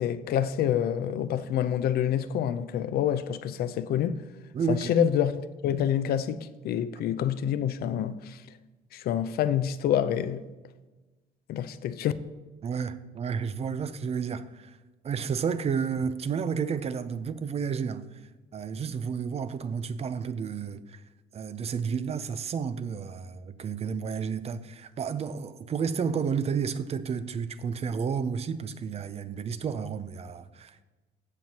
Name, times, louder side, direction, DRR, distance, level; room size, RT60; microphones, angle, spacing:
voice 1, 0.0-4.2 4.7-5.3 5.6-8.4 8.9-10.4 11.5-12.1, left 10 dB, 65° left, 0.6 m, -27 dB
voice 2, 4.5-5.1 12.6-14.8 15.0-18.2 18.5-21.0 21.3-30.8, right 6 dB, 40° right, 0.5 m, -31 dB
14.5 x 7.6 x 2.9 m
cardioid pair, 110°, 17 cm